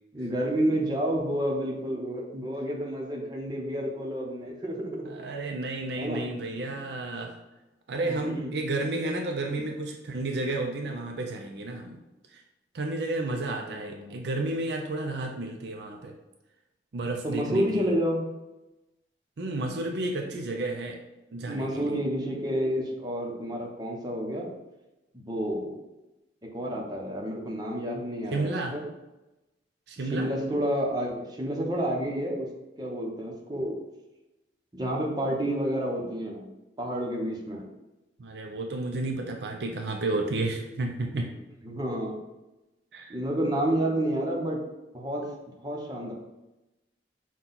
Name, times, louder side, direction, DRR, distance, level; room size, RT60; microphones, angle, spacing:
voice 1, 0.1-5.1 5.9-6.2 8.0-8.5 13.5-14.2 17.2-18.3 21.4-24.5 25.3-25.8 26.5-28.8 30.0-32.5 32.8-33.8 34.7-36.5 36.8-37.6 41.6-42.2 43.1-44.6 44.9-45.3 45.6-46.1, equal, 25° right, -2 dB, 0.8 m, -30 dB
voice 2, 5.1-7.4 7.9-12.0 12.3-12.4 12.7-16.1 16.9-17.9 19.4-21.0 21.3-22.0 28.3-28.8 29.9-30.3 38.2-41.3 42.9-43.2, right 2 dB, 70° right, 2 dB, 0.5 m, -32 dB
5.9 x 2.3 x 3.9 m, 0.99 s
head